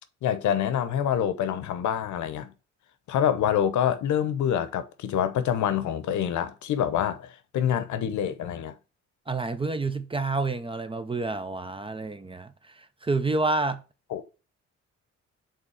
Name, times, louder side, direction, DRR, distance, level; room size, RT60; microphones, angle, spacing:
voice 1, 0.2-2.5 3.1-8.7 14.1-14.2, left 9 dB, 75° left, 0.8 m, -26 dB
voice 2, 9.3-13.8, right 3 dB, 20° right, 0.5 m, -29 dB
5.6 x 3.8 x 4.7 m
cardioid pair, 90°, 30 cm